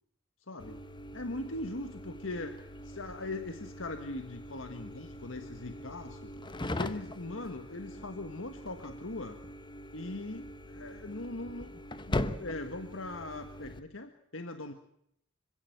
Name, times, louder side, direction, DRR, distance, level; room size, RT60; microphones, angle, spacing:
voice 1, 0.5-0.8 1.1-6.3 6.7-9.4 9.9-11.7 12.1-14.7, left 2 dB, 75° left, 7 dB, 1.6 m, -40 dB
sound 1, 0.6-13.8, left 1 dB, 25° left, 1.1 m, -41 dB
26.0 x 16.5 x 8.0 m, 0.73 s
head